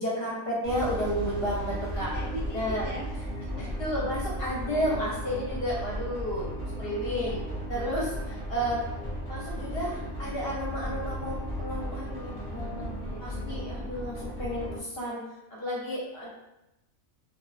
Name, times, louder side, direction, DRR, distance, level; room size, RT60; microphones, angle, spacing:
voice 1, 0.0-2.1 2.5-2.9 3.6-7.4 7.7-8.8 9.3-12.8 13.2-15.2 15.5-16.3, equal, 55° left, -5 dB, 0.7 m, -32 dB
Boom, 0.6-5.6, right 1 dB, 35° right, 0.7 m, -43 dB
sound 1, 0.7-14.8, equal, 30° left, 0.4 m, -35 dB
voice 2, 1.8-3.6 4.3-4.5 5.3-5.8 12.4-13.7, right 2 dB, 85° right, -9 dB, 0.3 m, -42 dB
2.4 x 2.3 x 2.3 m, 0.93 s
omnidirectional pair, 1.5 m